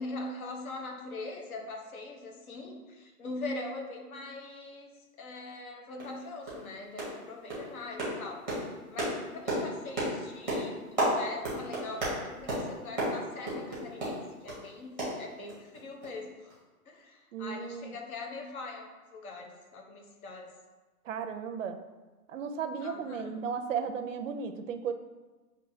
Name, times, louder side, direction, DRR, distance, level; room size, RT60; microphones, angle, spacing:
voice 1, 0.0-4.9 5.2-8.4 8.9-16.5 16.9-20.5 22.8-23.3, left 2 dB, 65° left, 2 dB, 1.0 m, -42 dB
sound 1, 5.5-5.6 6.0-6.2 6.4-6.7 7.0-7.2 7.5-14.6 15.0-16.1 16.5-16.6, right 1 dB, ahead, 0.6 m, -33 dB
voice 2, 17.3-18.0 21.1-21.8 22.3-24.9, right 6 dB, 60° right, 8 dB, 0.5 m, -35 dB
7.0 x 2.6 x 2.7 m, 1.2 s
hypercardioid pair, 165°, 45 cm